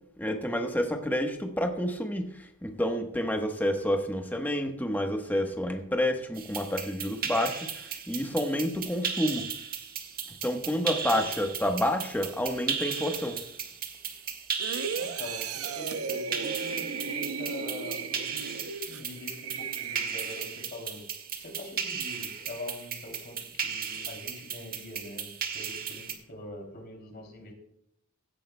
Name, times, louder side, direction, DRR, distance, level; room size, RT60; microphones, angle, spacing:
voice 1, 0.2-2.3 2.6-7.6 8.1-9.4 10.4-13.4, left 1 dB, 10° left, 4 dB, 1.1 m, -29 dB
sound 1, 6.3-26.1, right 7 dB, 45° right, 1.4 m, -36 dB
sound 2, 14.6-20.7 21.1-21.3, right 5 dB, 80° right, 0.7 m, -36 dB
voice 2, 14.9-21.0 21.4-23.4 23.6-27.5, left 1 dB, 50° left, 2 dB, 2.9 m, -43 dB
16.5 x 10.5 x 2.2 m, 0.75 s
head